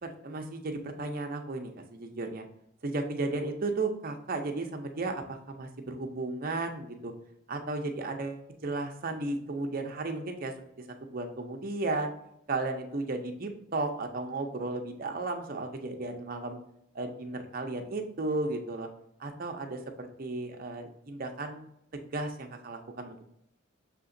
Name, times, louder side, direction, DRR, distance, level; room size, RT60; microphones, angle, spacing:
voice 1, 0.0-2.4 2.8-7.1 7.5-10.5 11.0-12.1 12.5-16.6 16.9-18.9 19.2-21.7 21.9-23.3, right 2 dB, 45° right, 4 dB, 0.5 m, -34 dB
6.7 x 2.8 x 2.6 m, 0.76 s
head